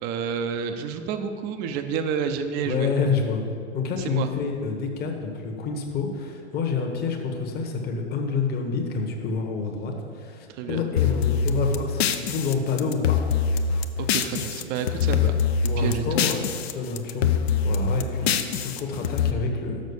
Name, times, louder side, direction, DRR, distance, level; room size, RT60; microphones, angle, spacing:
voice 1, 0.0-2.9 4.0-4.3 10.5-10.8 14.0-15.3 15.8-16.3, right 7 dB, 30° right, 7 dB, 0.5 m, -29 dB
voice 2, 2.6-3.4 3.7-13.2 15.7-16.5 16.7-17.3 17.6-19.8, left 4 dB, 25° left, 3 dB, 1.1 m, -28 dB
sound 1, 11.0-14.6 14.9-16.7 17.0-19.3, left 7 dB, 60° left, 0.6 m, -24 dB
6.4 x 6.2 x 6.9 m, 2.3 s
figure-of-eight pair, 105°, 36 cm